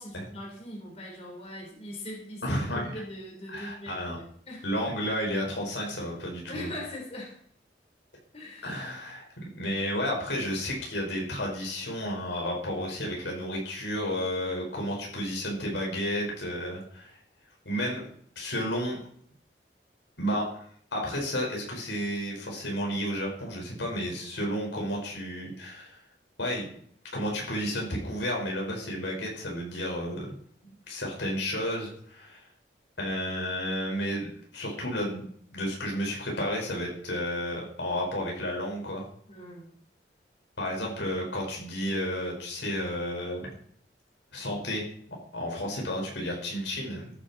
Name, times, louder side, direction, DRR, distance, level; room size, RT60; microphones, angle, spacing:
voice 1, 0.0-4.6 6.5-7.4 8.3-8.7 39.3-39.8, left 1 dB, 35° left, -1 dB, 4.5 m, -41 dB
voice 2, 2.4-2.9 3.5-4.2 4.6-6.7 8.6-17.2 17.7-18.1 18.4-19.0 20.2-20.7 20.9-26.0 26.4-26.7 27.1-30.4 30.9-32.5 33.0-35.3 35.5-39.0 40.6-43.5 44.3-47.1, equal, 85° left, -1 dB, 5.4 m, -32 dB
15.0 x 11.0 x 4.4 m, 0.62 s
head